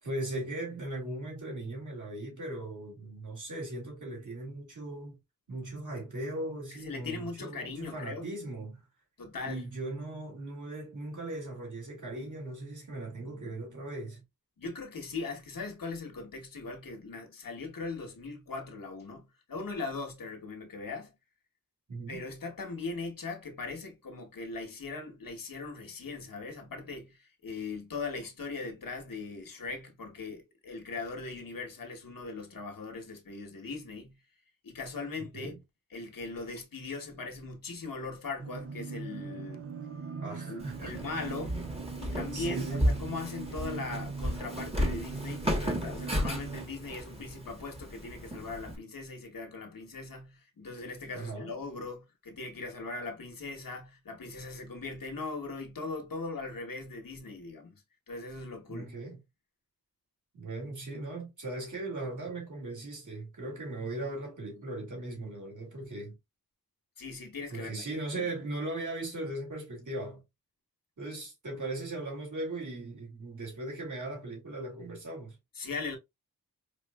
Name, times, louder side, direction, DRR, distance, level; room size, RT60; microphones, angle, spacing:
voice 1, 0.0-5.2 5.5-8.8 9.4-14.2 21.9-22.2 35.3-35.6 40.2-41.0 42.0-42.9 51.1-51.5 58.7-59.2 60.3-66.2 67.5-70.2 71.0-75.4, right 2 dB, 55° right, 2.2 m, -38 dB
voice 2, 6.8-8.3 9.2-9.6 13.3-13.5 14.6-21.1 22.1-34.1 34.6-35.5 35.9-39.7 40.5-41.6 42.0-58.9 67.0-68.3 75.5-76.0, left 3 dB, 65° left, 1.2 m, -40 dB
sound 1, 38.4-46.6, right 5 dB, 40° right, 0.4 m, -40 dB
Walk footsteps, 40.6-48.8, equal, 15° right, 1.2 m, -34 dB
4.9 x 2.5 x 2.2 m
wide cardioid pair, 60°, 36 cm